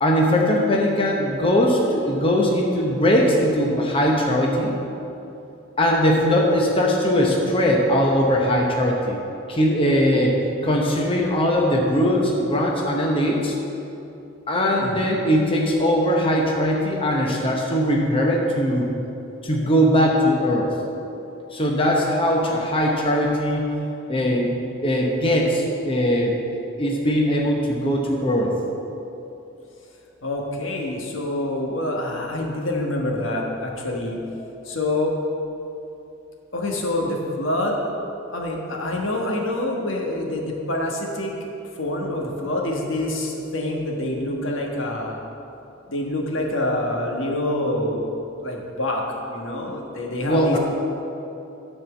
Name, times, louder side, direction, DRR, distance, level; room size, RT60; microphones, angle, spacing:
voice 1, 0.0-4.7 5.8-9.2 9.5-10.4 10.6-13.5 14.5-18.9 19.4-20.7 21.5-23.7 24.1-24.5 24.8-28.5 34.4-34.5 50.2-50.6, equal, 25° left, -1 dB, 0.9 m, -20 dB
voice 2, 14.8-15.2 30.2-34.2 34.7-35.1 36.5-37.8 38.3-41.3 41.8-45.2 45.9-48.0 48.4-49.0 49.3-50.6, left 1 dB, 75° left, 0 dB, 1.3 m, -26 dB
11.0 x 4.4 x 7.0 m, 2.8 s
head